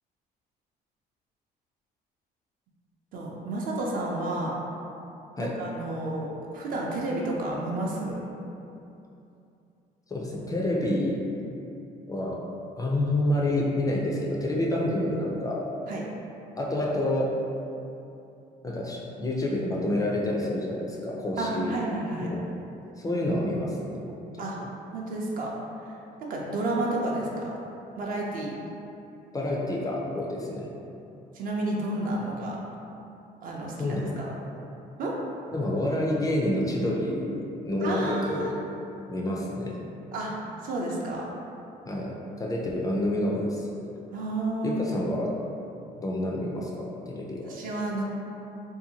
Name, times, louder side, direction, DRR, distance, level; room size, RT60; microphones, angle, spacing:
voice 1, 3.1-4.5 5.4-8.2 15.9-16.0 21.4-22.3 24.4-24.6 24.9-25.5 25.8-27.5 28.0-28.5 31.3-32.6 33.4-34.3 35.0-35.1 37.8-38.5 40.1-40.3 40.6-41.3 44.1-44.8 47.5-48.0, right 2 dB, 55° right, -2 dB, 0.5 m, -31 dB
voice 2, 10.1-11.2 12.1-12.4 12.8-15.6 16.6-17.3 18.6-21.8 22.2-22.4 23.0-24.0 29.3-30.7 33.8-34.3 35.5-38.5 39.1-39.8 41.9-42.1 42.4-43.7 44.6-45.3 45.9-47.5, left 1 dB, 20° left, -3 dB, 0.3 m, -28 dB
2.6 x 2.1 x 2.7 m, 2.7 s
cardioid pair, 110°, 17 cm